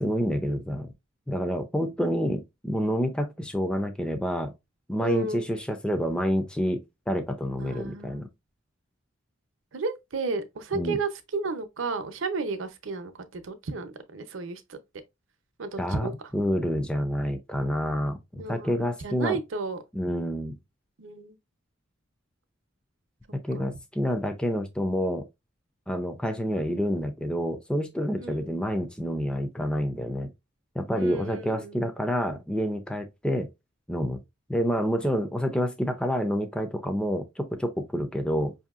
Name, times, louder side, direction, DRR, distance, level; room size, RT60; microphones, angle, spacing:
voice 1, 0.0-0.9 1.3-4.5 4.9-8.3 10.7-11.0 15.8-19.4 19.9-20.5 23.4-25.3 25.9-30.3 30.8-33.5 33.9-34.2 34.5-38.5, equal, 5° left, 0.4 m, -28 dB
voice 2, 5.0-5.5 7.6-8.3 9.7-14.8 15.6-16.1 18.4-19.8 21.0-21.4 23.5-23.7 28.2-28.5 30.9-31.8, right 3 dB, 70° right, 0.7 m, -33 dB
5.3 x 2.7 x 2.4 m
head